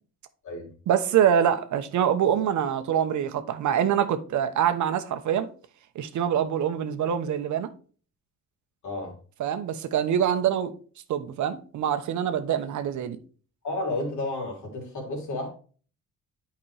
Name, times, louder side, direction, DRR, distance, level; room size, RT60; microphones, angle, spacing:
voice 1, 0.9-5.5 5.9-7.7 9.4-10.7 11.1-13.2, right 9 dB, 70° right, 1.0 m, -25 dB
voice 2, 8.8-9.1 13.6-15.5, left 2 dB, 70° left, 3.3 m, -31 dB
8.7 x 5.2 x 3.3 m
cardioid pair, 90°, 30 cm